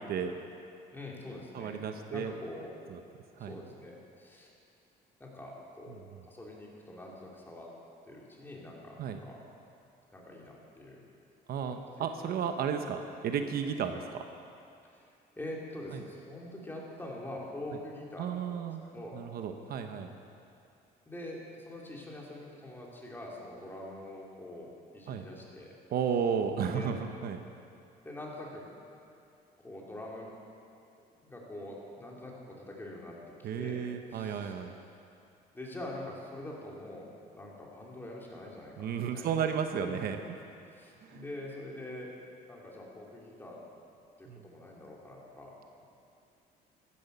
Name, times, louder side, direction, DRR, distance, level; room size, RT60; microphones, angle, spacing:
voice 1, 0.9-1.8 2.1-2.8 3.5-4.5 5.2-7.7 8.1-9.4 10.1-11.0 11.7-12.1 14.9-18.6 18.8-19.3 21.0-25.7 26.7-26.9 28.0-28.6 29.6-30.3 31.2-34.5 35.5-40.0 40.7-42.1 42.5-43.6 44.2-45.9, left 1 dB, 10° left, -3 dB, 3.2 m, -45 dB
voice 2, 1.5-2.3 2.9-3.0 3.4-3.6 9.0-9.2 11.5-14.0 18.2-18.8 19.1-20.1 25.1-25.2 25.9-27.0 27.2-27.4 33.4-34.8 38.8-40.2 41.0-41.2 44.3-44.4, right 7 dB, 65° right, 6 dB, 0.9 m, -33 dB
14.5 x 11.0 x 6.9 m, 2.6 s
cardioid pair, 110°, 17 cm